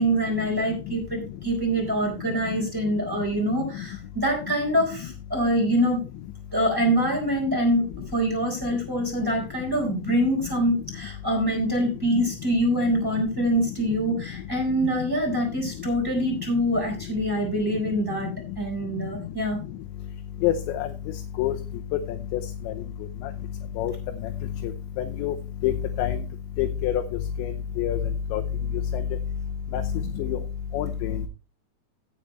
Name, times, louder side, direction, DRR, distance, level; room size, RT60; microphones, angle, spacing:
voice 1, 0.0-6.0 6.5-7.9 8.1-19.6, equal, 5° right, 0 dB, 3.6 m, -25 dB
voice 2, 20.4-20.9 21.4-21.6 22.3-22.4 22.7-22.8 23.8-23.9 25.2-25.3 25.6-25.7 26.0-26.2 26.6-27.0 27.4-27.5 27.8-28.0 28.3-28.4 28.9-29.0 29.7-29.8 30.2-30.4 30.7-31.3, left 11 dB, 80° left, 6 dB, 3.0 m, -25 dB
16.5 x 6.7 x 3.2 m, 0.30 s
omnidirectional pair, 5.4 m